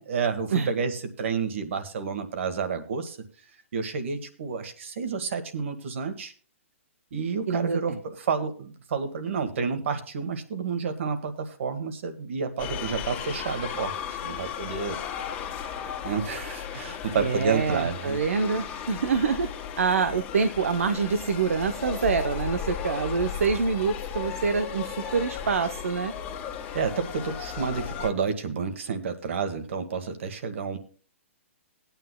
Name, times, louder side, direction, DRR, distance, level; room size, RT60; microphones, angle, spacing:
voice 1, 0.1-3.2 3.7-6.3 7.1-15.0 16.0-18.2 25.0-25.1 26.7-30.8, right 5 dB, 65° right, 8 dB, 1.8 m, -30 dB
voice 2, 7.5-8.0 17.1-19.5 19.8-26.1, right 5 dB, 80° right, 8 dB, 0.8 m, -26 dB
sound 1, 12.6-28.1, left 8 dB, 25° left, 1.9 m, -35 dB
20.0 x 9.0 x 2.2 m, 0.40 s
hypercardioid pair, 145°, 7 cm